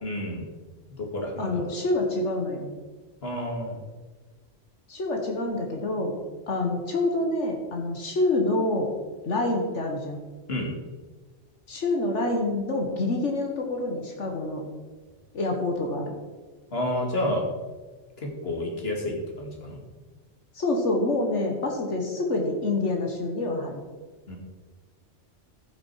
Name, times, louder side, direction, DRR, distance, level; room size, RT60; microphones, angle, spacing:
voice 1, 0.0-0.4 0.9-1.6 3.2-3.8 10.5-10.7 16.7-17.5 18.2-19.8 24.3-24.4, left 1 dB, 55° left, 0 dB, 2.3 m, -30 dB
voice 2, 1.4-2.7 4.9-6.1 6.5-8.9 9.2-10.2 11.7-14.6 15.3-16.1 20.5-23.8, left 2 dB, 75° left, 2 dB, 1.7 m, -27 dB
14.0 x 6.1 x 4.6 m, 1.3 s
omnidirectional pair, 1.2 m